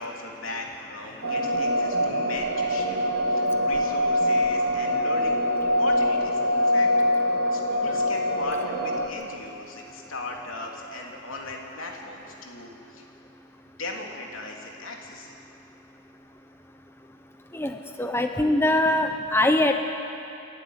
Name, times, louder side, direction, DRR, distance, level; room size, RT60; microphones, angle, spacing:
voice 1, 0.0-3.0 3.3-6.9 7.5-13.0 13.8-15.4, left 2 dB, 80° left, 0 dB, 3.2 m, -38 dB
sound 1, 1.2-9.1, equal, 70° right, 2.6 m, -24 dB
voice 2, 17.5-19.7, left 1 dB, 10° left, 5 dB, 0.8 m, -22 dB
29.0 x 11.5 x 9.5 m, 2.7 s
head